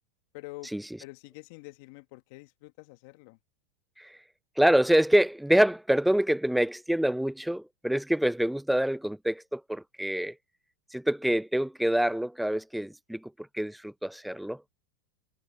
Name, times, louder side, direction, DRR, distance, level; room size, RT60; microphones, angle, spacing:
voice 1, 0.3-0.7 1.0-3.4, left 22 dB, 65° left, 1.5 m, -46 dB
voice 2, 4.6-10.3 10.9-14.6, right 1 dB, ahead, 0.4 m, -26 dB
hypercardioid pair, 105°, 0 cm